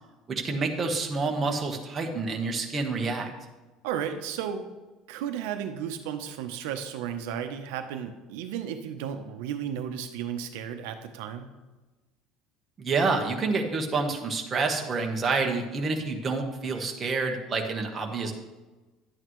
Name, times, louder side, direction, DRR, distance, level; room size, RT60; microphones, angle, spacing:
voice 1, 0.3-3.3 12.8-18.3, right 4 dB, 20° right, 2 dB, 1.1 m, -28 dB
voice 2, 3.8-4.7 5.1-11.5, right 8 dB, 85° right, 7 dB, 0.8 m, -34 dB
11.0 x 8.8 x 3.1 m, 1.2 s
cardioid pair, 150°, 0 cm